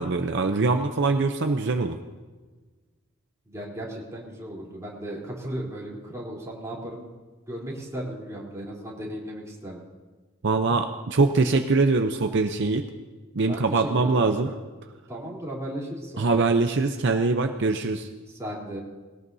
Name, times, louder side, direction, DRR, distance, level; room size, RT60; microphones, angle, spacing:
voice 1, 0.0-2.0 10.4-12.8 13.3-14.5 16.2-18.1, right 3 dB, 60° right, 6 dB, 0.7 m, -23 dB
voice 2, 3.5-7.1 7.5-9.8 13.4-14.5 15.1-16.4 18.3-18.8, right 1 dB, 15° right, -4 dB, 3.5 m, -36 dB
20.5 x 18.0 x 2.7 m, 1.3 s
head